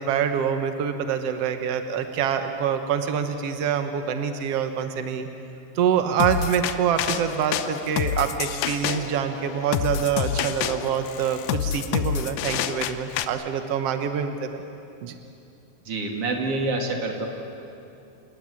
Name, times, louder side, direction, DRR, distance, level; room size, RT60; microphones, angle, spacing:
voice 1, 0.0-5.3 5.7-14.6 15.0-15.1, right 8 dB, 75° right, 7 dB, 1.4 m, -26 dB
sound 1, 6.2-13.2, left 10 dB, 80° left, 1.7 m, -28 dB
voice 2, 15.8-17.3, right 2 dB, 40° right, 2 dB, 3.2 m, -27 dB
28.5 x 18.0 x 9.7 m, 2.7 s
omnidirectional pair, 4.4 m